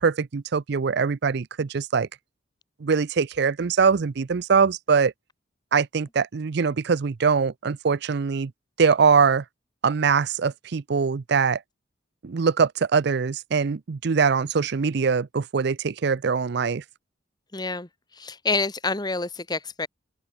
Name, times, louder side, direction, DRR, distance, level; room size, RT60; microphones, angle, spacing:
voice 1, 0.0-2.1 2.8-5.1 5.7-8.5 8.8-9.4 9.8-11.6 12.2-16.8, right 5 dB, 60° right, 0.5 m, -22 dB
voice 2, 17.5-19.9, left 3 dB, 20° left, 1.3 m, -28 dB
open air
head